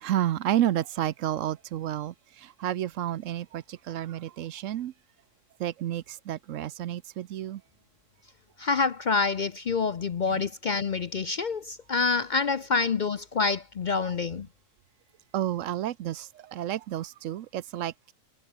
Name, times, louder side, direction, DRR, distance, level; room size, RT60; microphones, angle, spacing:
voice 1, 0.0-2.1 2.6-4.9 5.6-7.6 15.3-18.1, right 12 dB, 75° right, 1.0 m, -30 dB
voice 2, 8.6-14.5, left 4 dB, 50° left, 0.6 m, -27 dB
omnidirectional pair, 1.4 m